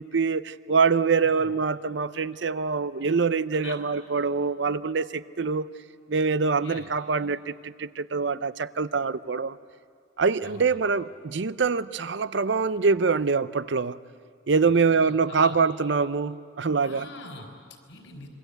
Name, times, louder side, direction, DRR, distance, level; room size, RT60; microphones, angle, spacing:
voice 1, 0.0-5.7 6.1-9.6 10.2-14.0 14.5-17.1, right 5 dB, 65° right, 15 dB, 0.6 m, -24 dB
voice 2, 6.3-6.9 10.4-10.8 14.7-15.6 16.8-18.3, left 2 dB, 85° left, 3 dB, 4.4 m, -43 dB
26.5 x 23.5 x 8.1 m, 2.1 s
head